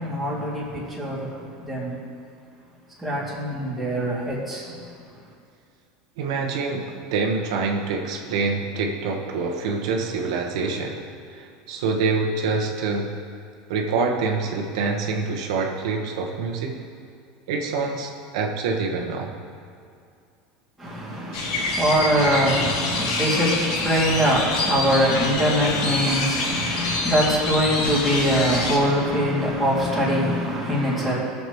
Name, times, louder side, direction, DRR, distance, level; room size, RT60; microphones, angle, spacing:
voice 1, 0.0-2.0 3.0-4.8 20.8-31.2, equal, ahead, -8 dB, 2.5 m, -23 dB
voice 2, 6.2-13.2 13.7-16.8 17.5-19.4, right 4 dB, 80° right, 0 dB, 1.2 m, -26 dB
sound 1, 21.3-28.8, left 2 dB, 90° left, 2.2 m, -26 dB
19.0 x 7.1 x 3.1 m, 2.4 s
supercardioid pair, 160°, 3 cm